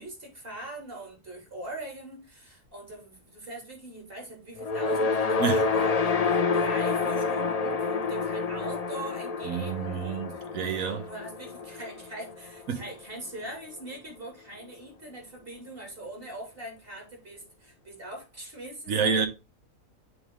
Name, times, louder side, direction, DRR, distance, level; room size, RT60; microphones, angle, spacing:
voice 1, 0.0-10.5 11.1-19.3, right 1 dB, 45° right, 3.0 m, -42 dB
sound 1, 4.6-12.9, left 4 dB, 45° left, 0.5 m, -28 dB
voice 2, 9.4-11.1 12.7-12.8 18.9-19.3, right 6 dB, 80° right, 1.5 m, -28 dB
7.7 x 3.7 x 3.7 m
omnidirectional pair, 1.4 m